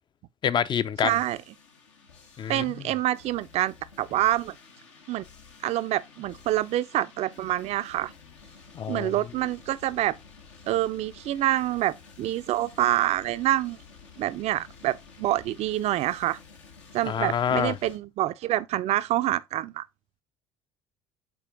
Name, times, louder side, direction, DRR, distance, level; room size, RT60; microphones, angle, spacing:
voice 1, 0.4-1.1 2.4-2.6 8.7-9.1 17.0-17.8, left 8 dB, 30° left, 0.5 m, -26 dB
sound 1, 0.9-18.0, left 5 dB, 75° left, 1.2 m, -51 dB
voice 2, 1.0-1.4 2.5-4.6 5.1-5.2 5.6-8.1 8.9-10.2 10.7-13.8 14.2-16.4 16.9-19.8, right 14 dB, 45° right, 0.5 m, -26 dB
6.9 x 4.3 x 3.6 m
figure-of-eight pair, 60°, 15 cm